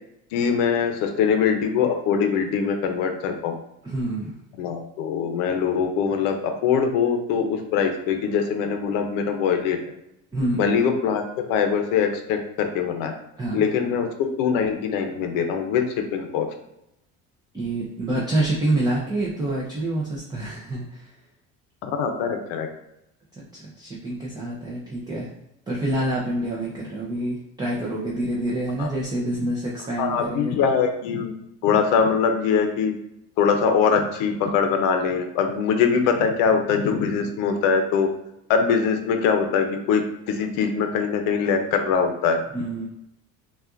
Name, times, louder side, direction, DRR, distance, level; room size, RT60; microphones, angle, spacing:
voice 1, 0.3-3.6 4.6-9.8 10.5-13.1 13.5-15.8 16.1-16.5 21.8-22.7 28.8-28.9 30.0-31.3 31.6-32.9 33.4-38.1 38.5-40.0 40.3-42.4, left 6 dB, 85° left, 5 dB, 0.7 m, -22 dB
voice 2, 3.8-4.3 10.3-10.6 13.4-13.6 17.5-21.2 23.3-25.3 25.7-30.5 42.5-42.9, right 1 dB, 15° right, -5 dB, 0.6 m, -27 dB
5.6 x 2.4 x 2.5 m, 0.83 s
cardioid pair, 145°, 32 cm